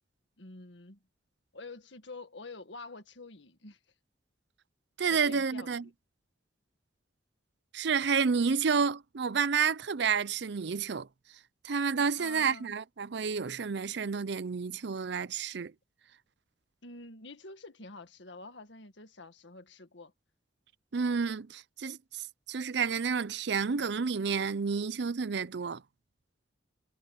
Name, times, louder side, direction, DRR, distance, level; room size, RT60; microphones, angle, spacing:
voice 1, 0.4-1.0 1.5-3.8 5.1-5.9 12.2-12.7 16.8-20.1, left 3 dB, 70° left, 1.9 m, -47 dB
voice 2, 5.0-5.8 7.7-11.1 11.6-15.7 20.9-25.8, right 5 dB, 65° right, 0.6 m, -30 dB
head